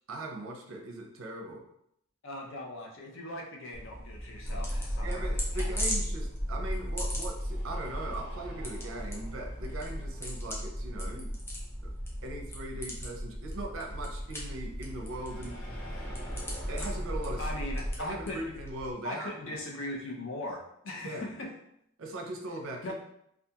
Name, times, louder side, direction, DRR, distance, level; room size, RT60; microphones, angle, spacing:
voice 1, 0.1-1.6 5.0-11.3 11.8-11.9 12.2-15.6 16.7-17.5 18.0-19.5 21.0-21.3 22.0-22.9, right 1 dB, 65° right, 1 dB, 0.5 m, -40 dB
voice 2, 2.2-5.7 17.4-18.5 19.0-21.5 22.8-22.9, left 1 dB, 60° left, 0 dB, 0.5 m, -39 dB
sound 1, 3.7-18.9, equal, 10° left, 0.4 m, -42 dB
sound 2, 4.4-17.9, equal, 85° left, 1.0 m, -36 dB
2.3 x 2.3 x 2.7 m, 0.75 s
head